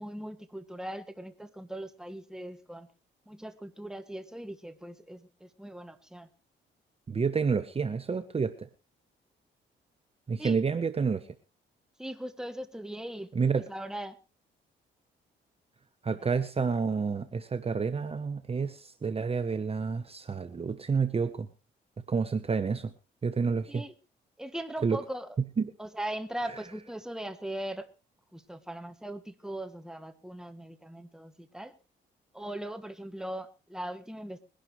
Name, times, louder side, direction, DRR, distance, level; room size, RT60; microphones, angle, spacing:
voice 1, 0.0-2.9 3.3-6.3 10.4-10.6 12.0-14.2 16.1-16.3 23.7-23.9 24.4-25.4 25.8-27.9 28.3-31.8 32.3-34.4, right 1 dB, 5° right, 1.7 m, -39 dB
voice 2, 7.1-8.5 10.3-11.2 13.3-13.6 16.0-21.5 22.1-22.9 23.2-23.8 24.8-25.0 25.6-25.7, right 5 dB, 30° right, 1.0 m, -29 dB
22.0 x 11.5 x 3.2 m
cardioid pair, 90°, 20 cm